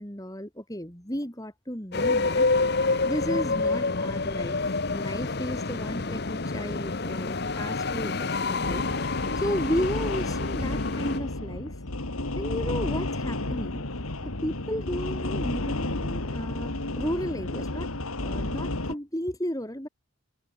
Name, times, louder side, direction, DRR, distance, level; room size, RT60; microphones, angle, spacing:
voice 1, 0.0-2.5 3.1-4.6 4.9-8.8 9.4-11.7 12.4-13.8 14.2-17.9 18.2-19.9, equal, 15° left, 3.4 m, -33 dB
sound 1, 1.9-11.2, left 3 dB, 50° left, 1.0 m, -28 dB
sound 2, 8.6-18.9, left 2 dB, 90° left, 2.5 m, -31 dB
head